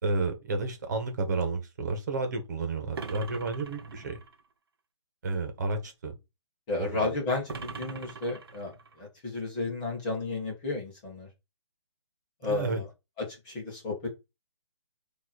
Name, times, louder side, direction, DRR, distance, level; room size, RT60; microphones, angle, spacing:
voice 1, 0.0-4.2 5.2-6.1 6.8-7.1 12.4-12.8, right 3 dB, 35° right, 1.7 m, -31 dB
sound 1, 2.9-4.4 7.5-9.0, right 5 dB, 50° right, 0.9 m, -41 dB
voice 2, 6.7-8.7 9.0-11.3 12.4-12.8 13.4-14.1, left 3 dB, 15° left, 1.7 m, -32 dB
7.6 x 3.1 x 4.3 m
hypercardioid pair, 175°, 15 cm